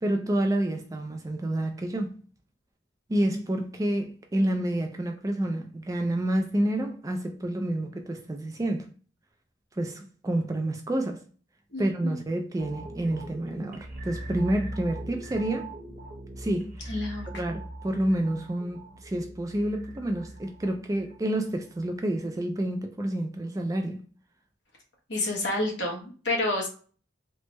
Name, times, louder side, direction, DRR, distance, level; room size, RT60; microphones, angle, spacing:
voice 1, 0.0-2.2 3.1-8.9 9.8-11.2 11.8-15.7 16.4-16.9 17.3-24.0, right 1 dB, 20° right, 0.3 m, -29 dB
voice 2, 11.7-12.2 16.9-17.3 25.1-26.7, left 2 dB, 65° left, 1.1 m, -29 dB
sound 1, 12.6-21.9 22.2-22.4, right 1 dB, 45° right, 1.1 m, -41 dB
3.2 x 2.0 x 3.0 m
head